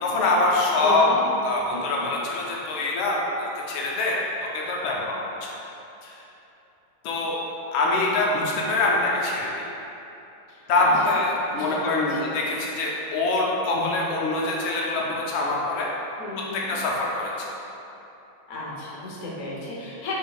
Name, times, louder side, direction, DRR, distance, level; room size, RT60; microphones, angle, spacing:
voice 1, 0.0-1.1 1.4-4.2 4.5-5.5 6.0-6.2 7.0-7.4 7.7-9.5 10.7-15.9 16.5-17.5, left 2 dB, 80° left, -3 dB, 1.4 m, -24 dB
voice 2, 0.8-1.2 10.5-10.9 11.5-12.3 16.2-16.7 18.5-20.1, left 2 dB, 65° left, -6 dB, 0.7 m, -34 dB
5.1 x 3.3 x 2.2 m, 3.0 s
omnidirectional pair, 2.3 m